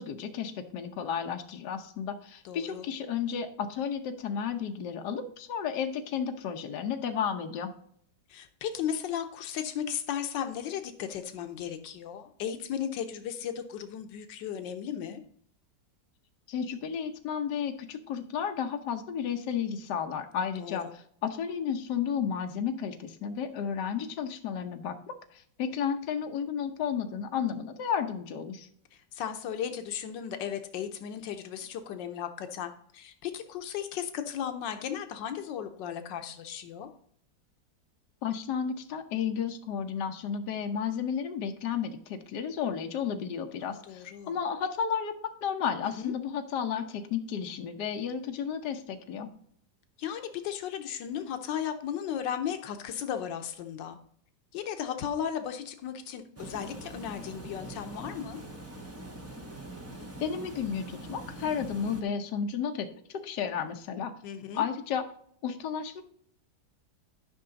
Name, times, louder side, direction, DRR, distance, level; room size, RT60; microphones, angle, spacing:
voice 1, 0.0-7.7 16.5-28.7 38.2-45.1 45.4-49.3 60.2-62.9 63.1-64.1 64.5-65.0 65.4-66.0, left 7 dB, 70° left, 6 dB, 1.4 m, -32 dB
voice 2, 2.4-2.9 8.3-15.2 20.6-20.9 28.9-36.9 43.6-44.4 45.8-46.1 50.0-54.0 54.5-58.4 64.2-64.6, left 9 dB, 85° left, 7 dB, 1.5 m, -35 dB
Water, 56.4-62.0, right 2 dB, 10° right, 0.7 m, -43 dB
11.0 x 5.7 x 3.9 m, 0.63 s
omnidirectional pair, 1.9 m